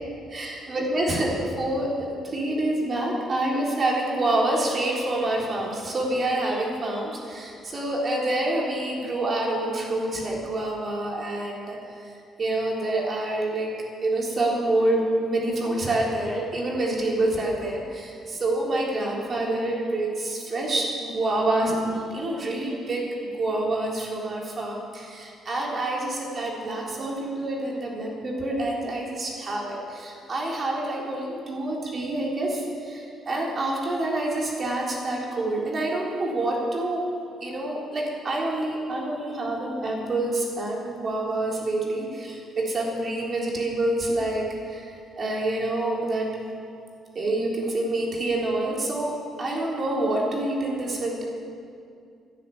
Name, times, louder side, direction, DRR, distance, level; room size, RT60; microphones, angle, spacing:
voice 1, 0.3-13.7 14.0-23.1 23.4-37.0 37.4-46.3 47.2-51.2, right 2 dB, 45° right, -2 dB, 3.8 m, -27 dB
12.5 x 9.7 x 8.5 m, 2.3 s
cardioid pair, 90°, 0 cm